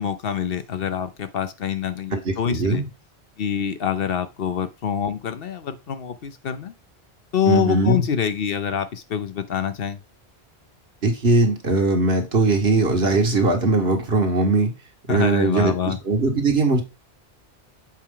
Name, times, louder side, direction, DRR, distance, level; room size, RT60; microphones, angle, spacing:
voice 1, 0.0-2.8 3.4-6.7 7.3-10.0 15.1-16.0, left 8 dB, 65° left, 0.9 m, -25 dB
voice 2, 2.1-2.8 7.5-8.0 11.0-14.7 15.1-16.8, right 3 dB, 65° right, 1.8 m, -20 dB
7.4 x 4.5 x 3.7 m
omnidirectional pair, 1.1 m